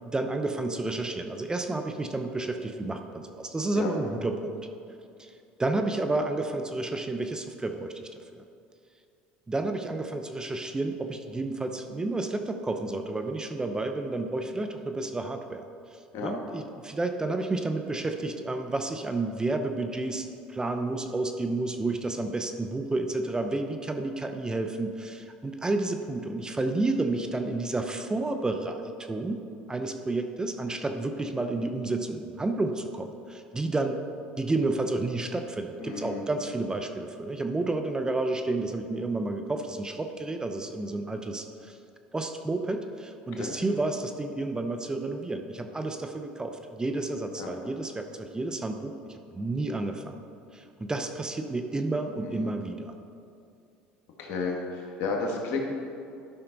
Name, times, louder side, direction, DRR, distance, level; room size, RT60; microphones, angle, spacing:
voice 1, 0.0-4.6 5.2-5.3 5.6-8.4 9.5-15.6 16.2-29.4 29.7-34.0 34.4-41.8 42.1-50.2 50.5-53.0, right 2 dB, 15° right, 6 dB, 0.7 m, -31 dB
voice 2, 35.8-36.3 43.3-43.5 47.4-47.5 52.2-52.5 54.2-55.6, left 4 dB, 65° left, 0 dB, 1.7 m, -32 dB
12.5 x 5.7 x 4.0 m, 2.5 s
supercardioid pair, 85°, 4 cm